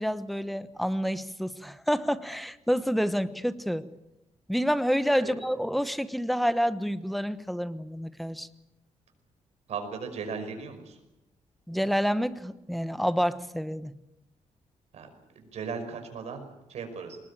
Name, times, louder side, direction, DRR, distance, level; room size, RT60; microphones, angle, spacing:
voice 1, 0.0-3.8 4.5-8.5 11.7-13.9, equal, ahead, 13 dB, 1.1 m, -28 dB
voice 2, 9.7-11.0 14.9-15.1 15.4-17.2, right 5 dB, 65° right, 6 dB, 5.4 m, -37 dB
22.5 x 20.0 x 8.8 m, 0.93 s
cardioid pair, 130°, 12 cm